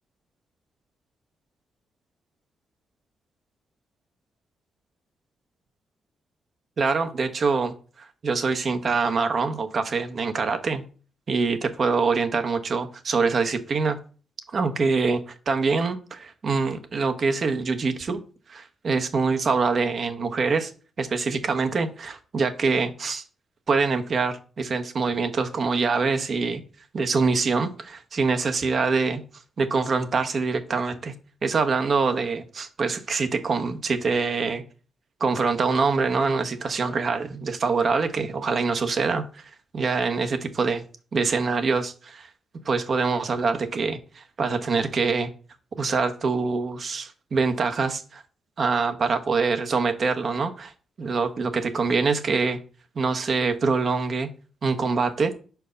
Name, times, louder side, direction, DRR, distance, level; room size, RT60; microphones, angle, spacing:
voice 1, 6.8-10.8 11.3-14.0 14.5-18.2 18.5-20.7 21.0-23.2 23.7-26.6 26.9-29.2 29.6-31.1 31.4-34.6 35.2-40.8 41.1-42.3 42.6-45.3 45.8-48.2 48.6-50.7 51.0-52.6 52.9-54.3 54.6-55.3, right 4 dB, 55° right, 1.0 m, -25 dB
5.2 x 4.6 x 5.1 m
cardioid pair, 65°, 0 cm